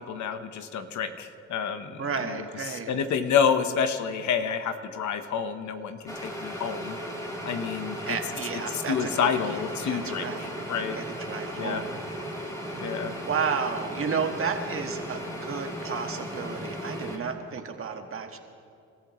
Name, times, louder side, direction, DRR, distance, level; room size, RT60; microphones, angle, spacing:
voice 1, 0.0-2.0 2.7-7.0 7.4-8.2 8.7-11.0 11.5-11.8 12.8-13.1, left 7 dB, 70° left, 9 dB, 1.1 m, -28 dB
voice 2, 2.0-2.9 8.1-9.6 9.9-10.5 10.9-12.0 12.7-18.4, right 6 dB, 45° right, 5 dB, 1.6 m, -32 dB
sound 1, 6.1-17.2, equal, 10° left, 3.3 m, -36 dB
29.0 x 14.0 x 3.1 m, 2.5 s
cardioid pair, 90°, 30 cm